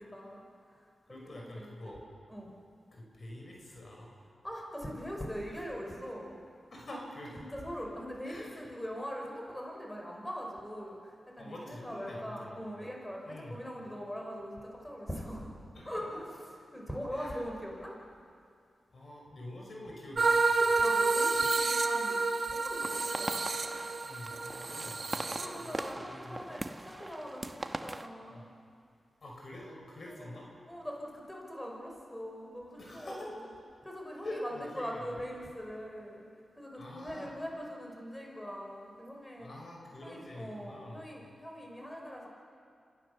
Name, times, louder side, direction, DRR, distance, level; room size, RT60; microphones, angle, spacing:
voice 1, 0.0-1.9 2.3-2.5 4.4-6.4 7.4-15.6 15.8-16.1 16.7-18.0 20.6-23.4 25.4-28.5 30.1-30.4 30.7-33.5 33.8-36.3 36.6-39.5 40.0-42.3, equal, 10° left, 0 dB, 5.4 m, -42 dB
voice 2, 1.1-2.0 2.9-4.1 5.5-5.6 6.7-7.4 8.2-8.6 11.4-12.7 13.3-13.6 15.7-16.1 17.1-17.5 18.9-20.6 24.0-25.3 25.5-25.7 26.0-26.4 28.3-28.4 29.2-30.5 32.8-33.3 34.2-35.2 36.8-37.3 39.4-41.1, left 1 dB, 55° left, -1 dB, 5.5 m, -46 dB
sound 1, 20.2-25.9, right 3 dB, 60° right, 1.6 m, -29 dB
sound 2, 22.8-28.1, right 1 dB, 25° right, 1.2 m, -41 dB
27.0 x 16.0 x 6.8 m, 2.3 s
cardioid pair, 50°, 0 cm